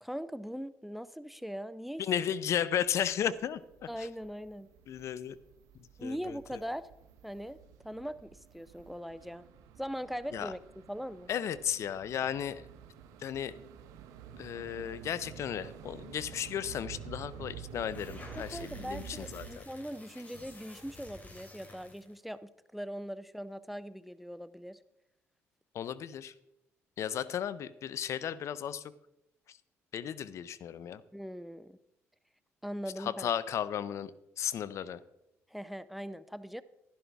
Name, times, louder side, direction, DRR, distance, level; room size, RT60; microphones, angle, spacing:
voice 1, 0.0-2.1 3.9-4.7 6.0-6.9 7.2-7.6 7.8-9.5 9.8-10.6 10.9-11.3 18.3-24.8 31.1-31.8 32.6-33.3 35.5-36.6, equal, ahead, 16 dB, 0.5 m, -40 dB
voice 2, 2.0-3.6 4.0-4.1 4.9-5.4 6.0-6.4 10.3-10.5 11.3-12.6 13.2-13.6 14.4-19.6 25.7-26.3 27.0-28.8 29.9-31.0 33.0-34.1 34.4-35.0, left 9 dB, 60° left, 17 dB, 0.5 m, -34 dB
sound 1, 2.8-19.6, right 8 dB, 85° right, 0.9 m, -50 dB
sound 2, 17.7-22.2, left 2 dB, 30° left, 2.9 m, -51 dB
11.5 x 11.0 x 3.5 m, 0.89 s
supercardioid pair, 75°, 6 cm